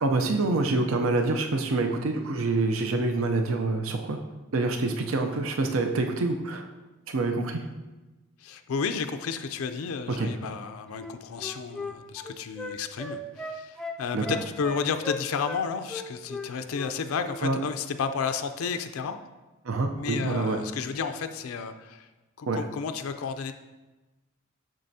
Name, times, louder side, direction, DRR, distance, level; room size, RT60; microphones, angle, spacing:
voice 1, 0.0-4.2 4.5-6.7 7.1-7.7 10.2-10.3 14.1-14.2 17.4-17.6 19.6-20.6 22.5-22.6, right 3 dB, 70° right, 5 dB, 0.6 m, -26 dB
voice 2, 8.4-19.2 19.9-22.1 22.4-23.5, left 5 dB, 80° left, 8 dB, 0.4 m, -32 dB
Wind instrument woodwind instrument, 10.9-15.6 15.9-17.0 17.2-17.4, left 3 dB, 5° left, 0.4 m, -37 dB
7.5 x 6.6 x 2.7 m, 1.1 s
head